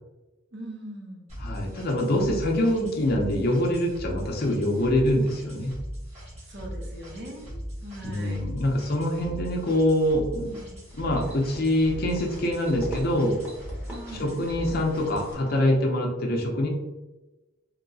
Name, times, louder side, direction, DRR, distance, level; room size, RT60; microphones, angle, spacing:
voice 1, 0.5-1.2 6.5-8.5 10.4-10.9 13.9-14.4, right 1 dB, 55° right, -1 dB, 0.8 m, -41 dB
sound 1, 1.3-15.3, equal, 30° right, 1.2 m, -39 dB
voice 2, 1.4-5.7 8.0-10.5 10.9-13.4 14.2-16.7, left 1 dB, 50° left, 1 dB, 0.6 m, -24 dB
sound 2, 10.9-15.8, equal, 10° right, 0.8 m, -43 dB
3.0 x 2.8 x 2.7 m, 1.1 s
head